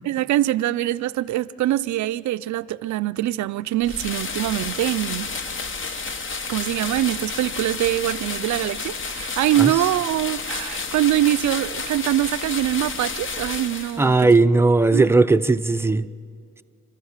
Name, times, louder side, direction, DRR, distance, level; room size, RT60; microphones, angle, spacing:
voice 1, 0.1-5.3 6.5-14.4 14.9-15.1, right 14 dB, 70° right, 0.5 m, -23 dB
sound 1, 3.8-14.2, left 4 dB, 40° left, 1.2 m, -31 dB
voice 2, 14.0-16.1, right 3 dB, 10° right, 0.5 m, -17 dB
30.0 x 12.5 x 7.3 m
cardioid pair, 90°, 30 cm